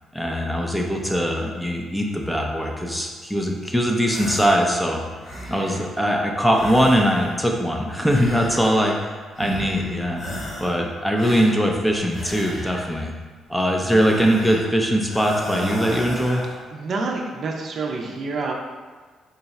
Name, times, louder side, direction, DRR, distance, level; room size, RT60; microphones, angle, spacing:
voice 1, 0.1-5.0 5.5-10.2 10.6-13.1 13.5-16.4, equal, 5° left, 0 dB, 0.5 m, -21 dB
sound 1, 4.1-4.7 5.0-5.9 6.5-7.5 8.0-9.0 9.3-9.9 10.2-10.8 11.2-13.0 13.8-14.7 15.1-16.6, equal, 55° left, 1.4 m, -34 dB
voice 2, 16.7-18.5, right 3 dB, 55° right, 1 dB, 0.5 m, -27 dB
3.9 x 2.3 x 4.1 m, 1.4 s
cardioid pair, 90°, 0 cm